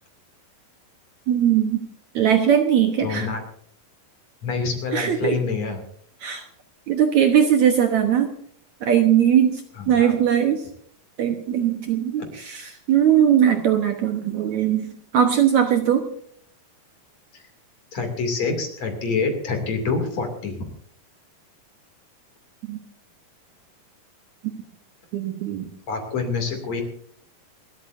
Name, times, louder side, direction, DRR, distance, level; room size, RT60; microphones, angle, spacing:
voice 1, 1.3-1.8 2.2-3.3 4.9-5.3 6.2-6.4 6.9-8.3 8.8-9.6 9.9-10.6 11.2-16.1 22.7-22.8 25.1-25.7, right 9 dB, 65° right, 4 dB, 2.1 m, -20 dB
voice 2, 3.0-3.4 4.4-5.8 9.8-10.1 12.2-12.3 17.9-20.6 25.9-26.8, left 4 dB, 50° left, 4 dB, 3.6 m, -26 dB
28.5 x 13.0 x 2.6 m, 0.63 s
omnidirectional pair, 4.2 m